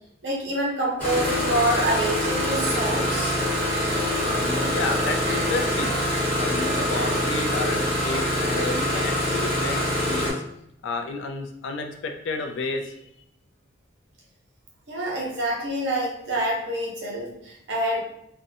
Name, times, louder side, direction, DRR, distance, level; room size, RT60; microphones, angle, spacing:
voice 1, 0.2-3.3 14.9-18.0, right 1 dB, 65° right, -2 dB, 0.8 m, -26 dB
Engine starting, 1.0-10.3, equal, 10° left, 1.1 m, -25 dB
voice 2, 4.2-5.9 6.3-10.4 10.8-13.1 15.0-15.2, left 3 dB, 70° left, 4 dB, 0.3 m, -31 dB
2.4 x 2.1 x 2.6 m, 0.75 s
head